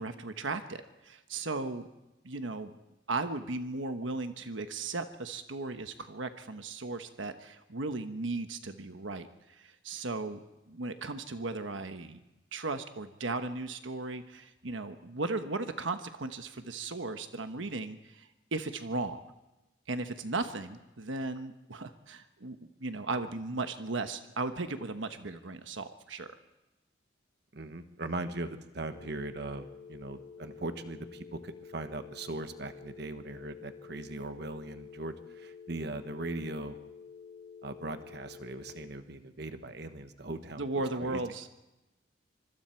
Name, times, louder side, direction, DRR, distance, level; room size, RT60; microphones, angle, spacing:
voice 1, 0.0-1.9 2.2-2.7 3.1-12.2 12.5-19.2 19.9-26.3 40.6-41.5, right 3 dB, 85° right, 8 dB, 1.2 m, -36 dB
voice 2, 27.5-36.8 37.6-41.2, right 2 dB, 60° right, 9 dB, 1.3 m, -39 dB
sound 1, 28.9-38.9, left 6 dB, 70° left, 2.6 m, -50 dB
25.5 x 24.5 x 4.6 m, 0.99 s
head